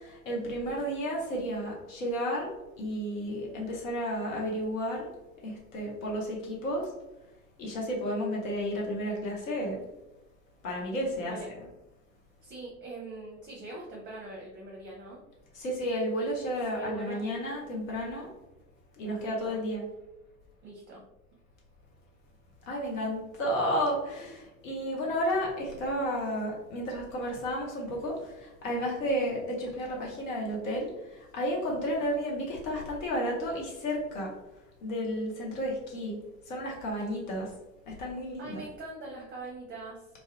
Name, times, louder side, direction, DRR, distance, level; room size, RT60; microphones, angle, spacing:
voice 1, 0.1-5.1 5.4-6.9 7.6-9.8 10.6-11.4 15.5-18.3 19.0-19.8 22.7-34.3 34.8-36.2 36.5-37.5 37.9-38.6, equal, 75° left, -2 dB, 0.8 m, -32 dB
voice 2, 11.2-11.5 12.4-15.2 16.7-17.3 19.0-19.6 20.6-21.0 38.4-40.1, right 2 dB, 30° right, -3 dB, 0.6 m, -42 dB
2.3 x 2.0 x 2.7 m, 0.99 s
figure-of-eight pair, 65°, 40 cm